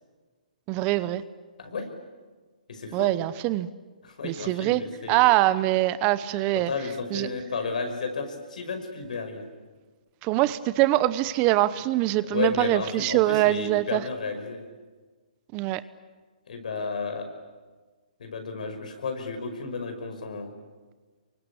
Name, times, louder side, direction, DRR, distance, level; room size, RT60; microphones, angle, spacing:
voice 1, 0.7-1.2 2.9-3.7 4.2-6.7 7.1-7.3 10.2-14.0 15.5-15.8, right 16 dB, 30° right, 16 dB, 0.8 m, -23 dB
voice 2, 2.7-3.1 4.0-5.2 6.7-9.5 12.3-14.6 16.5-17.3 18.2-20.5, left 4 dB, 70° left, 6 dB, 5.6 m, -32 dB
28.0 x 24.0 x 8.7 m, 1.4 s
hypercardioid pair, 140°, 4 cm